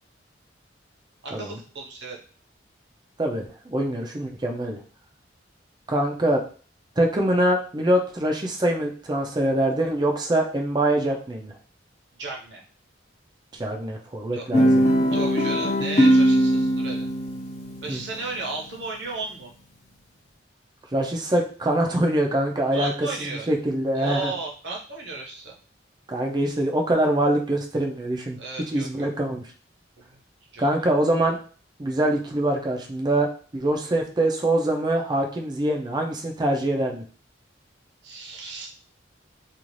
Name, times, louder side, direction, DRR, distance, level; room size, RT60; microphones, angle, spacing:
voice 1, 1.2-2.2 12.2-12.6 14.3-14.4 15.1-17.0 17.8-19.5 22.7-23.5 23.9-25.5 28.4-29.1 30.0-30.2 30.5-30.7 38.0-38.7, right 3 dB, 65° right, -1 dB, 0.9 m, -34 dB
voice 2, 3.2-4.8 5.9-6.4 7.0-11.5 13.5-14.8 17.9-18.0 20.9-24.3 26.1-28.4 28.7-29.4 30.6-31.4 31.8-33.3 33.5-37.0, right 1 dB, 20° right, 2 dB, 0.4 m, -24 dB
Guitar, 14.5-18.9, equal, 35° left, 0.5 m, -21 dB
2.5 x 2.4 x 3.1 m, 0.40 s
head